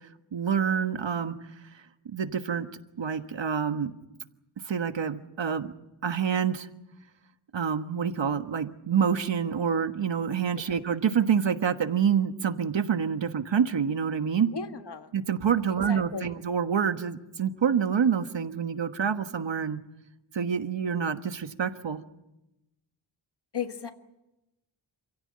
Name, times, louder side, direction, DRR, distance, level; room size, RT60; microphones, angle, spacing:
voice 1, 0.3-1.3 2.0-2.7 3.0-3.9 4.7-5.7 6.0-6.7 7.5-14.5 15.1-19.8 20.3-22.0, right 7 dB, 70° right, 9 dB, 1.4 m, -27 dB
voice 2, 14.5-15.1 15.9-16.3 23.5-23.9, left 6 dB, 60° left, 7 dB, 1.8 m, -35 dB
28.0 x 16.0 x 8.8 m, 0.95 s
wide cardioid pair, 95°, 46 cm